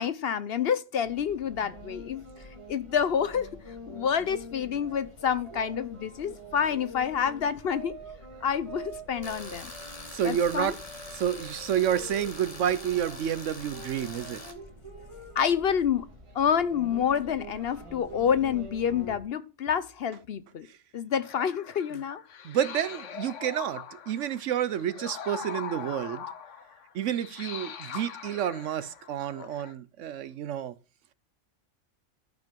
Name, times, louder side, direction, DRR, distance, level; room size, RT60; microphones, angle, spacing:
voice 1, 0.0-2.2 2.7-3.5 3.9-7.9 8.4-9.7 10.2-10.7 15.3-16.1 16.3-20.7 20.9-22.2 27.8-28.0 29.4-29.5, left 8 dB, 60° left, 0.8 m, -28 dB
sound 1, 1.0-19.2, equal, 25° right, 1.9 m, -45 dB
Tools, 9.2-14.5, left 2 dB, 30° left, 1.6 m, -44 dB
voice 2, 10.1-10.8 11.1-14.4 20.6-20.8 22.4-26.2 26.9-30.7, right 10 dB, 75° right, 1.0 m, -29 dB
sound 2, 21.1-29.7, left 7 dB, 75° left, 1.2 m, -42 dB
11.5 x 5.2 x 5.3 m
omnidirectional pair, 1.3 m